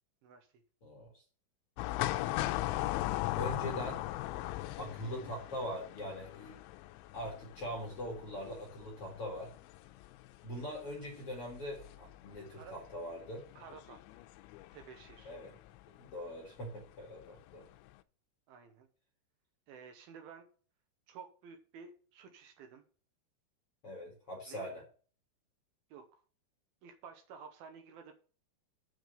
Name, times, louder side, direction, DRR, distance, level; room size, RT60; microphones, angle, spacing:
voice 1, 0.8-1.2 3.4-4.0 4.8-6.6 7.1-9.5 10.4-13.4 15.2-15.5 16.0-17.7 23.8-24.8, equal, 45° left, -2 dB, 1.9 m, -42 dB
sound 1, 1.8-15.8 16.1-16.2 17.2-17.5 17.9-18.0, left 16 dB, 85° left, 2.7 m, -39 dB
voice 2, 13.6-14.2 14.7-15.3 18.5-18.9 19.7-20.5 21.1-22.8 24.5-24.7 25.9-26.2 26.8-28.1, right 6 dB, 80° right, 6 dB, 2.2 m, -52 dB
7.2 x 6.2 x 6.7 m, 0.40 s
omnidirectional pair, 5.6 m